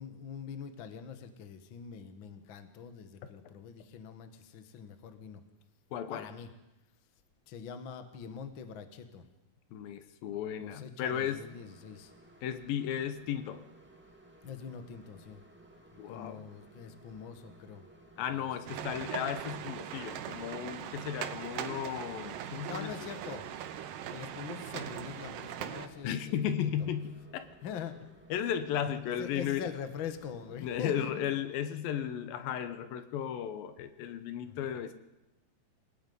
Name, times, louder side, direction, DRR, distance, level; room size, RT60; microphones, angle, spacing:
voice 1, 0.0-5.4 6.1-6.5 7.5-9.3 10.6-12.1 14.4-15.4 15.9-17.8 18.1-18.5 22.7-23.7 24.1-26.3 26.6-26.9 27.6-28.0 29.0-31.3 34.4-34.6, left 7 dB, 50° left, 8 dB, 1.6 m, -44 dB
voice 2, 5.9-6.3 9.7-11.5 12.4-13.6 16.0-16.5 18.2-23.1 26.0-27.5 28.3-29.7 30.6-35.0, left 9 dB, 80° left, 10 dB, 2.8 m, -35 dB
sound 1, 11.1-30.9, right 1 dB, 5° right, 1.2 m, -58 dB
sound 2, 18.7-25.9, right 10 dB, 75° right, 2.6 m, -40 dB
28.0 x 18.0 x 5.5 m, 1.0 s
omnidirectional pair, 4.1 m